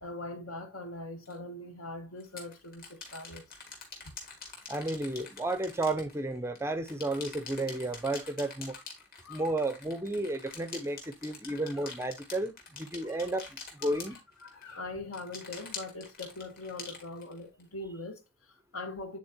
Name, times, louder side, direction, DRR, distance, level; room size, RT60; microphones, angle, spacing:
voice 1, 0.0-3.4 9.2-9.4 11.5-11.9 13.8-14.1 14.4-19.2, left 2 dB, 75° left, 1.3 m, -42 dB
sound 1, 1.3-1.4 2.2-6.6 6.9-14.7 15.1-17.6, left 4 dB, 45° left, 2.1 m, -45 dB
voice 2, 4.7-8.8 9.3-14.2, right 2 dB, 10° right, 0.4 m, -32 dB
9.1 x 4.1 x 2.8 m
head